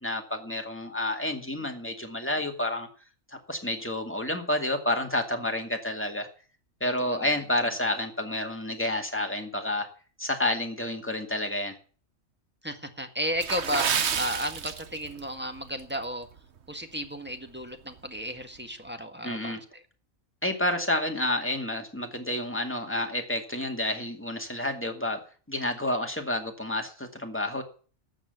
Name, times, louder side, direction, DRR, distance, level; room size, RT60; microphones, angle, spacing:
voice 1, 0.0-2.9 3.3-6.3 6.8-9.9 10.2-11.7 19.2-19.6 20.4-25.2 25.5-27.6, left 1 dB, 10° left, 3 dB, 2.1 m, -29 dB
voice 2, 6.8-7.3 12.6-16.3 16.7-19.8, equal, 10° right, 6 dB, 1.6 m, -34 dB
Water / Splash splatter, 13.4-15.3 15.6-15.8 16.4-16.6 17.1-17.2, right 7 dB, 55° right, 1.1 m, -29 dB
12.5 x 7.6 x 9.2 m, 0.41 s
omnidirectional pair, 1.4 m